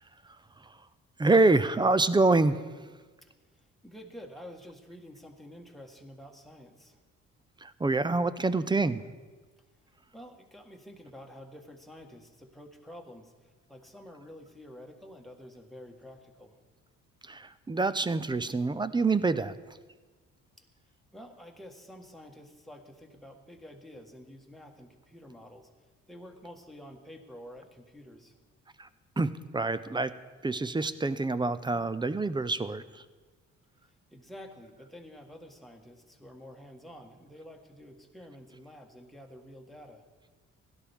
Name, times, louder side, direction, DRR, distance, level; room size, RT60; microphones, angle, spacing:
voice 1, 1.2-2.6 7.6-9.0 17.3-19.6 28.8-28.9 29.2-30.1 30.4-33.0, right 3 dB, 15° right, 14 dB, 0.4 m, -26 dB
voice 2, 3.2-7.0 10.1-16.6 20.6-20.7 21.1-25.7 26.1-28.3 34.1-40.0, equal, ahead, 2 dB, 1.5 m, -49 dB
16.5 x 11.5 x 3.6 m, 1.4 s
cardioid pair, 90°, 30 cm